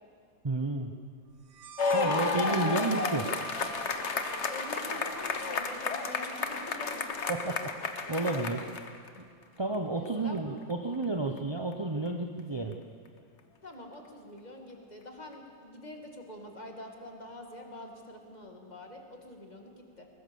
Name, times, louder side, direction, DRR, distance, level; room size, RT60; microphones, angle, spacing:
voice 1, 0.4-0.9 1.9-3.3 7.3-7.7 8.1-8.7 9.6-12.8, right 2 dB, 30° right, 3 dB, 0.4 m, -31 dB
sound 1, 1.5-8.8, right 11 dB, 65° right, 1.7 m, -46 dB
sound 2, 1.8-9.1 10.1-10.2, left 4 dB, 45° left, 1.2 m, -32 dB
voice 2, 1.9-2.7 4.5-7.3 9.9-10.4 13.6-20.1, left 1 dB, 20° left, 2 dB, 2.2 m, -45 dB
21.5 x 19.5 x 7.1 m, 2.1 s
omnidirectional pair, 2.0 m